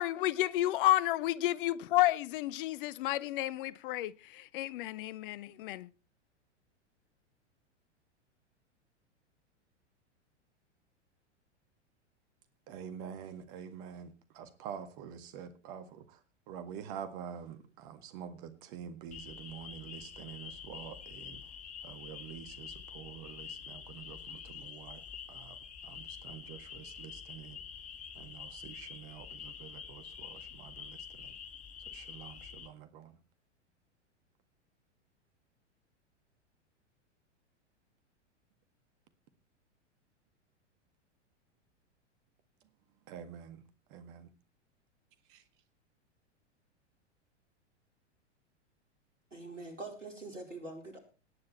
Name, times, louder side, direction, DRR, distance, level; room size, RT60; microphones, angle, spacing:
voice 1, 0.0-5.9, left 15 dB, 45° left, 0.8 m, -31 dB
voice 2, 12.7-21.5 21.8-25.0 25.3-27.6 28.2-31.4 31.9-33.2 43.1-43.6 43.9-44.3 45.3-45.4, right 8 dB, 45° right, 1.8 m, -47 dB
sound 1, 19.1-32.7, left 7 dB, 20° left, 1.7 m, -47 dB
voice 3, 49.3-51.0, right 2 dB, 90° right, 4.6 m, -44 dB
18.5 x 9.5 x 4.3 m
figure-of-eight pair, 95°, 36 cm